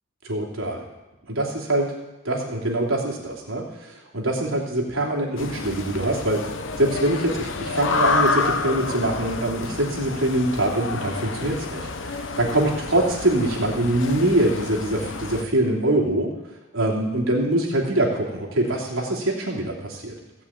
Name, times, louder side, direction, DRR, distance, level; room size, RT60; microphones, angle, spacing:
voice 1, 0.2-0.8 1.3-1.9 2.2-16.3 16.7-20.2, right 1 dB, 90° right, -2 dB, 2.9 m, -24 dB
sound 1, 5.4-15.4, left 3 dB, 65° left, 1.0 m, -29 dB
16.5 x 5.7 x 8.8 m, 1.0 s
head